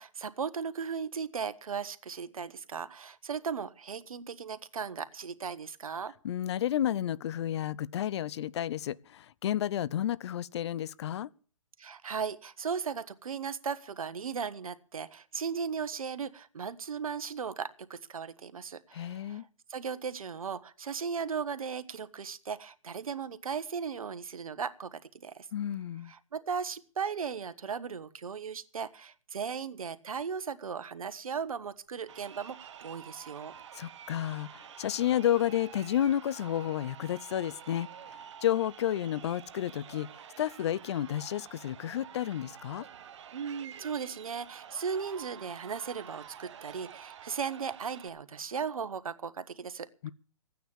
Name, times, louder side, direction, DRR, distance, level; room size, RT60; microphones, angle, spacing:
voice 1, 0.0-6.1 11.8-25.5 26.1-33.5 43.3-49.9, right 6 dB, 85° right, 1.2 m, -37 dB
voice 2, 6.2-11.3 18.9-19.4 25.5-26.1 33.7-40.1 40.4-42.9 50.0-50.1, left 11 dB, 50° left, 0.6 m, -31 dB
Crowd, 32.0-48.1, right 9 dB, 55° right, 1.3 m, -49 dB
14.5 x 9.4 x 7.2 m
hypercardioid pair, 145°, 18 cm